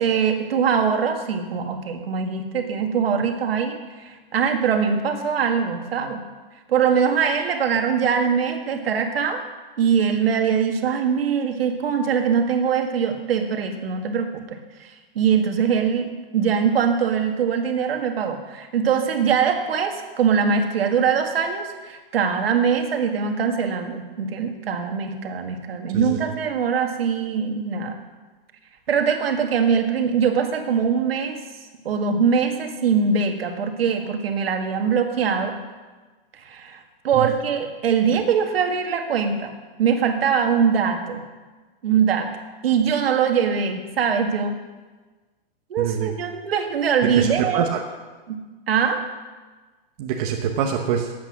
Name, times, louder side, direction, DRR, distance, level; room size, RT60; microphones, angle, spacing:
voice 1, 0.0-6.2 6.7-9.4 9.8-14.9 15.2-16.1 16.3-28.0 28.9-31.4 31.9-35.5 36.5-36.8 37.0-39.5 39.8-41.2 41.8-42.3 42.6-44.5 45.7-47.6 48.3-48.4 48.7-49.0, right 6 dB, 80° right, 5 dB, 1.9 m, -22 dB
voice 2, 45.8-46.1 47.2-47.8 50.0-51.1, right 8 dB, 40° right, 2 dB, 1.0 m, -25 dB
12.5 x 8.4 x 6.0 m, 1.3 s
hypercardioid pair, 155°, 29 cm